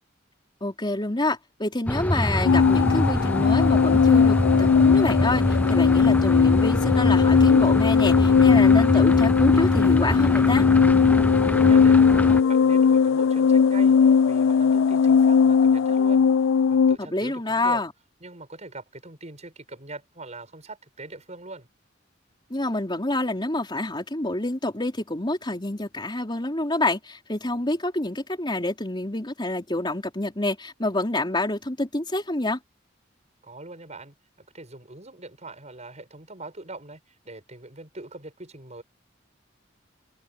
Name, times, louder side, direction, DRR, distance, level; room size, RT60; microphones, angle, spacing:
voice 1, 0.6-10.7 17.0-17.9 22.5-32.6, left 2 dB, 25° left, 3.9 m, -27 dB
sound 1, 1.9-12.4, left 1 dB, 10° left, 0.8 m, -25 dB
sound 2, 2.4-17.0, left 6 dB, 85° left, 0.3 m, -18 dB
voice 2, 11.5-16.3 16.7-17.8 18.2-21.7 33.4-38.8, right 2 dB, 35° right, 7.5 m, -42 dB
head